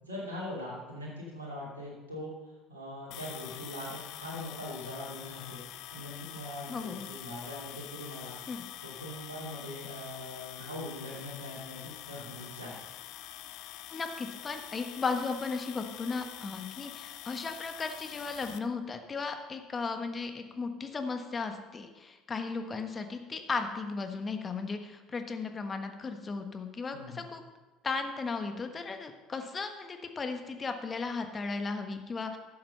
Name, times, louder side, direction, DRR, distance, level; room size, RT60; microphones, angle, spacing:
voice 1, 0.0-2.3 2.7-5.6 5.9-8.4 8.8-12.8 26.9-27.3, left 1 dB, 80° right, -5 dB, 2.8 m, -41 dB
sound 1, 3.1-18.6, left 13 dB, 60° left, 0.6 m, -45 dB
voice 2, 6.7-7.1 8.5-8.6 13.9-27.4 27.8-32.4, left 4 dB, 30° left, 6 dB, 1.3 m, -36 dB
12.5 x 7.6 x 5.5 m, 1.2 s
figure-of-eight pair, 60°, 0 cm